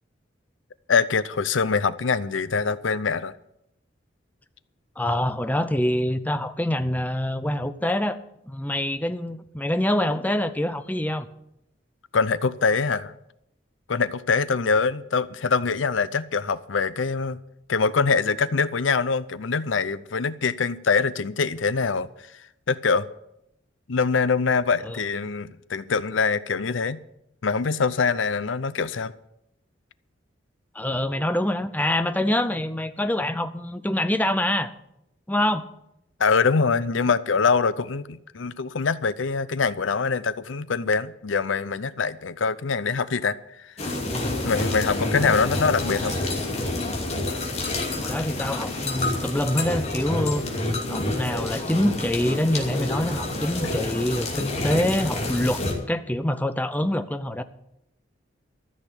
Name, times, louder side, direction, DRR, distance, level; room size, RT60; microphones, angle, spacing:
voice 1, 0.9-3.3 12.1-13.1 13.9-17.4 17.7-22.1 22.7-23.1 23.9-27.0 27.4-29.1 36.2-43.7 44.4-46.1, left 5 dB, 85° left, 0.7 m, -24 dB
voice 2, 5.0-8.2 8.5-11.3 24.8-25.0 30.7-34.7 35.3-35.7 45.2-45.4 48.0-50.5 50.9-55.6 55.9-57.4, left 1 dB, 10° left, 0.6 m, -25 dB
sound 1, 43.8-55.7, left 2 dB, 35° left, 2.6 m, -28 dB
14.0 x 6.5 x 9.9 m
head